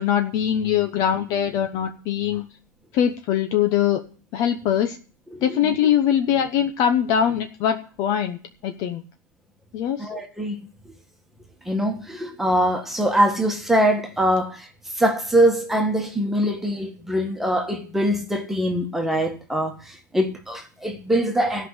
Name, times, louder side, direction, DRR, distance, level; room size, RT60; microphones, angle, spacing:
voice 1, 0.0-2.5 2.9-4.0 4.3-5.0 5.4-9.0 9.7-10.1, left 9 dB, 35° left, 0.9 m, -22 dB
voice 2, 5.3-5.7 10.0-10.7 11.6-14.7 14.9-21.7, equal, 5° right, 1.7 m, -23 dB
13.5 x 5.6 x 8.1 m
hypercardioid pair, 140°, 11 cm